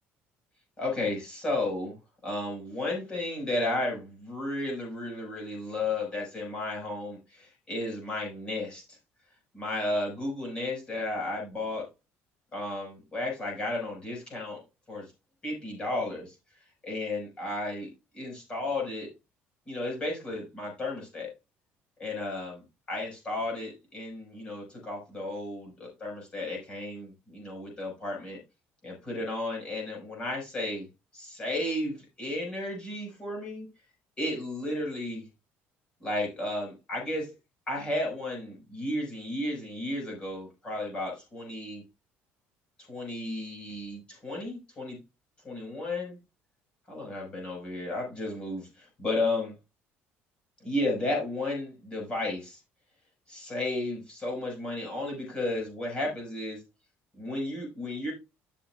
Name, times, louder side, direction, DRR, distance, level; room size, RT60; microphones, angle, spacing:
voice 1, 0.8-1.9 2.2-9.0 9.5-11.8 12.5-14.6 14.9-15.1 15.4-16.4 16.8-19.1 19.7-21.3 22.0-28.4 28.8-30.8 31.1-33.7 34.2-35.2 36.0-37.3 37.7-41.8 42.9-45.0 45.4-46.2 46.9-49.5 50.6-52.6 53.3-56.6 57.2-58.1, left 2 dB, 20° left, -1 dB, 5.9 m, -33 dB
13.0 x 7.2 x 2.5 m, 0.26 s
cardioid pair, 175°, 5 cm